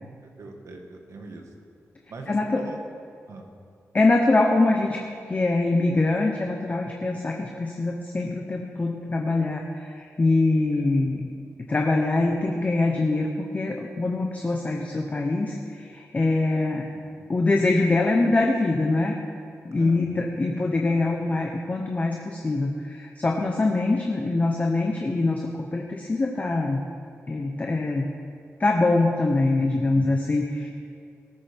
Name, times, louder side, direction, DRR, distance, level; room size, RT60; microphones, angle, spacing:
voice 1, 0.4-1.5 2.1-2.8 3.3-3.5 10.7-10.9 17.2-17.3 19.8-20.0 29.6-30.1, right 3 dB, 65° right, 3 dB, 1.6 m, -41 dB
voice 2, 2.3-2.7 3.9-5.0 5.3-11.3 11.7-16.9 17.3-19.2 19.6-26.8 27.3-28.1 28.6-30.7, left 2 dB, 30° left, 2 dB, 0.9 m, -24 dB
18.0 x 13.5 x 3.5 m, 2.4 s
wide cardioid pair, 140°, 5 cm